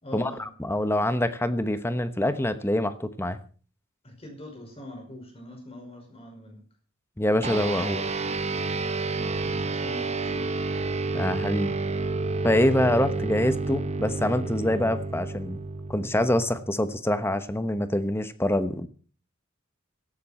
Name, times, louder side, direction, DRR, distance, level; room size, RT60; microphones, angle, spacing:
voice 1, 0.0-0.5 4.0-6.6 9.2-10.6, left 1 dB, 30° left, 3 dB, 5.5 m, -43 dB
voice 2, 0.6-3.4 7.2-8.1 11.1-11.7 12.4-15.6 15.9-18.9, left 1 dB, 10° left, 11 dB, 1.1 m, -25 dB
sound 1, 7.4-17.2, right 3 dB, 35° right, 1.1 m, -30 dB
17.0 x 14.0 x 4.4 m, 0.40 s
head